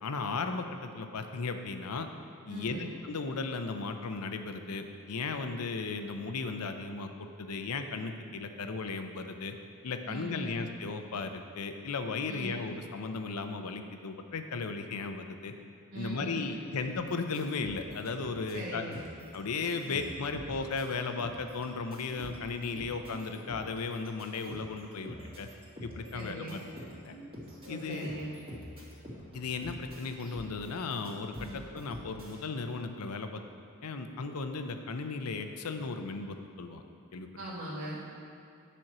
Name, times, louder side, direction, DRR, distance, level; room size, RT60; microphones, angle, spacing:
voice 1, 0.0-2.1 2.5-9.5 9.8-15.5 15.9-18.8 19.3-25.5 25.8-26.6 27.0-27.2 27.7-28.1 29.3-33.4 33.8-36.8 37.1-37.3, left 4 dB, 85° left, 7 dB, 0.6 m, -36 dB
voice 2, 2.5-2.9 10.1-10.6 12.3-12.5 15.9-16.4 18.5-19.0 19.9-20.0 26.1-26.6 27.6-28.3 31.4-31.6 37.4-38.1, right 1 dB, 60° right, -7 dB, 1.2 m, -40 dB
sound 1, 17.1-18.6 18.9-19.4 19.6-32.4, equal, 25° right, 2.0 m, -47 dB
9.0 x 4.5 x 6.1 m, 2.6 s
head